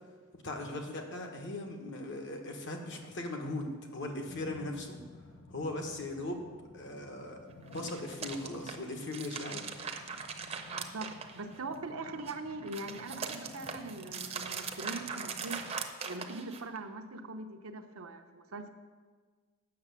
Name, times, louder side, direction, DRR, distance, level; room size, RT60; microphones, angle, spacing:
voice 1, 0.4-5.0 5.5-6.5 6.7-7.4 7.7-10.2, left 2 dB, 55° left, 3 dB, 1.3 m, -39 dB
sound 1, 4.3-15.8, left 2 dB, 75° left, 0.8 m, -53 dB
sound 2, 7.6-11.8 12.1-16.8, right 5 dB, 30° right, 0.7 m, -40 dB
voice 2, 10.7-15.7 16.0-18.7, right 2 dB, 80° right, 6 dB, 0.8 m, -42 dB
8.6 x 6.8 x 6.9 m, 1.5 s
head